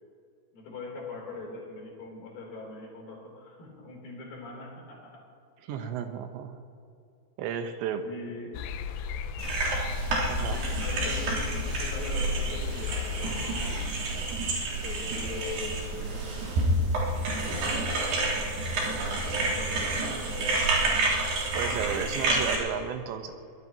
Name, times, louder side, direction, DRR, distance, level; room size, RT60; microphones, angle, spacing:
voice 1, 0.5-5.3 8.0-8.6 10.5-14.4 14.7-16.7 17.7-18.3 18.6-20.6, left 3 dB, 55° left, -2 dB, 5.1 m, -42 dB
voice 2, 5.6-6.5 7.4-8.0 10.3-10.6 21.5-23.3, right 7 dB, 90° right, 6 dB, 3.4 m, -33 dB
sound 1, 8.5-13.9, left 7 dB, 85° left, 2.6 m, -35 dB
sound 2, 9.4-22.6, right 2 dB, 70° right, 5.3 m, -29 dB
23.5 x 19.5 x 3.0 m, 2.4 s
omnidirectional pair, 5.0 m